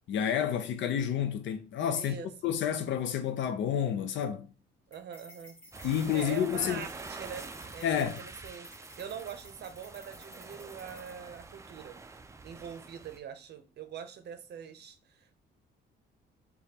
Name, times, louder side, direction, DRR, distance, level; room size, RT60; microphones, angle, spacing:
voice 1, 0.1-2.2 2.4-4.5 5.8-6.8 7.8-8.2, left 9 dB, 70° left, 0.6 m, -30 dB
voice 2, 1.9-2.3 4.9-5.6 6.1-12.0 12.4-15.4, right 8 dB, 55° right, 0.6 m, -44 dB
sound 1, 4.9-11.4, equal, 10° left, 1.2 m, -54 dB
sound 2, 5.7-13.2, right 3 dB, 15° right, 0.3 m, -46 dB
5.0 x 2.3 x 2.8 m
cardioid pair, 90°, 20 cm